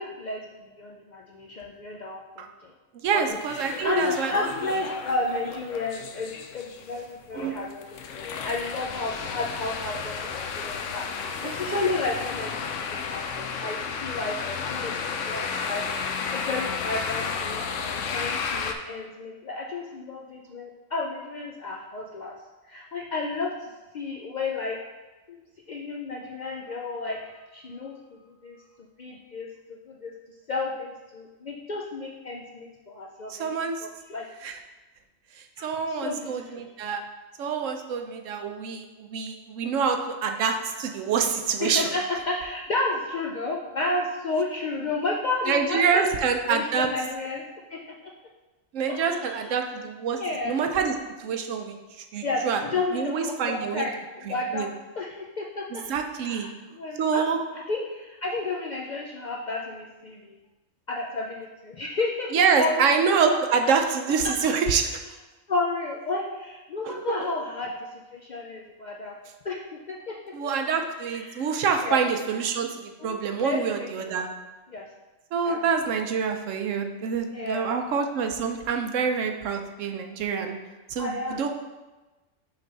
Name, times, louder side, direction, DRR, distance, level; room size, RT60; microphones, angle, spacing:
voice 1, 0.0-2.7 3.1-14.3 14.7-15.8 16.3-22.4 22.7-23.7 23.9-24.8 25.3-25.4 25.7-28.0 28.3-28.6 29.0-29.5 29.9-30.1 30.5-33.5 33.8-34.3 35.6-36.7 41.6-46.0 46.5-47.4 47.7-48.1 48.9-49.5 50.1-50.6 52.2-54.7 54.9-55.8 56.2-60.4 60.9-62.3 62.6-63.0 63.6-63.7 65.5-69.2 69.4-69.6 69.9-70.2 71.1-71.5 71.8-72.0 73.0-74.2 74.7-74.9 75.4-75.7 77.3-77.8 81.0-81.5, left 3 dB, 60° left, -2 dB, 0.4 m, -32 dB
voice 2, 3.0-4.5 7.4-7.6 11.4-11.9 33.3-33.8 34.4-34.6 35.6-37.0 37.4-41.9 45.5-46.9 48.7-50.2 50.4-52.6 52.9-53.8 54.3-54.7 55.7-56.5 57.0-57.4 62.3-64.9 66.8-67.3 70.3-74.3 75.3-80.6 80.9-81.5, right 6 dB, 80° right, 5 dB, 1.0 m, -26 dB
sound 1, 3.3-18.7, left 6 dB, 75° left, 0.9 m, -33 dB
5.9 x 3.3 x 5.3 m, 1.1 s
omnidirectional pair, 1.3 m